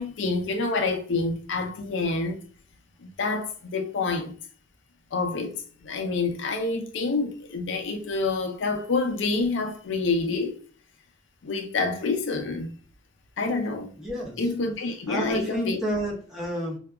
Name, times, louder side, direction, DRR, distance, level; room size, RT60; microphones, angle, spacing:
voice 1, 0.0-2.4 3.0-4.3 5.1-10.6 11.4-12.7 13.4-13.9 14.4-15.8, left 3 dB, 65° left, 0.4 m, -27 dB
voice 2, 14.0-14.5 15.1-16.8, right 1 dB, ahead, 0.6 m, -30 dB
2.7 x 2.2 x 2.3 m
head